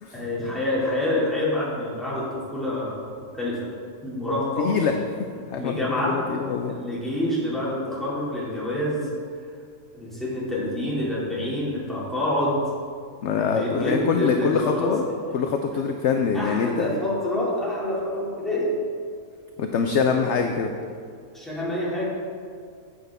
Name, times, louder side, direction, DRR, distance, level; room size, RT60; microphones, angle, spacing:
voice 1, 0.1-3.7 4.0-4.7 5.5-6.3 6.7-9.1 9.9-12.7 13.3-15.0 16.3-18.8 21.3-22.0, left 1 dB, ahead, -8 dB, 2.2 m, -27 dB
voice 2, 4.6-4.9 5.5-5.8 6.1-6.8 13.2-15.1 15.3-16.9 19.6-20.7, left 6 dB, 65° left, 4 dB, 0.7 m, -24 dB
9.4 x 8.1 x 3.5 m, 2.2 s
omnidirectional pair, 1.6 m